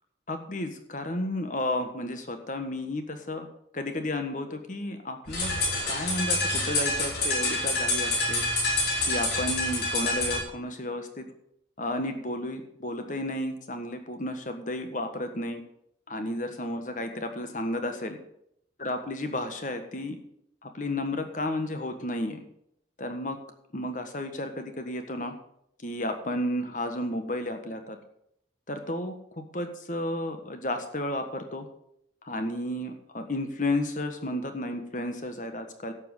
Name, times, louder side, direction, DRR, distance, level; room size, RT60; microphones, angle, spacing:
voice 1, 0.3-3.5 3.7-5.5 5.8-8.4 9.0-11.3 11.8-15.6 16.1-18.2 18.8-20.2 20.6-22.4 23.0-23.4 23.7-25.3 25.8-28.0 28.7-31.7 32.2-35.9, left 1 dB, 45° left, 7 dB, 1.5 m, -32 dB
sound 1, 5.3-10.4, left 2 dB, 65° left, 4.8 m, -27 dB
11.5 x 7.5 x 6.7 m, 0.74 s
head